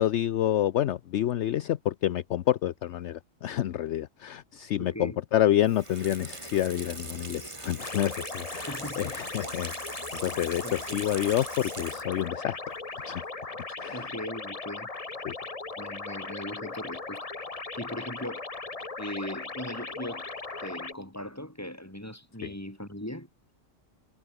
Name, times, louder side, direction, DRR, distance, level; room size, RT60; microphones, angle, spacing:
voice 1, 0.0-12.6 13.1-13.2 13.8-14.1 15.2-15.4 22.4-22.5, left 12 dB, 65° left, 0.9 m, -28 dB
voice 2, 4.8-5.2 8.7-9.2 10.6-11.0 13.9-14.9 15.8-17.3 17.8-18.4 19.0-20.3 20.6-23.3, left 1 dB, 10° left, 4.4 m, -39 dB
Water tap faucet / Sink (filling or washing), 5.6-12.3 12.7-12.8, right 2 dB, 25° right, 1.7 m, -42 dB
sound 1, 7.8-20.9, left 3 dB, 30° left, 1.5 m, -38 dB
omnidirectional pair, 1.3 m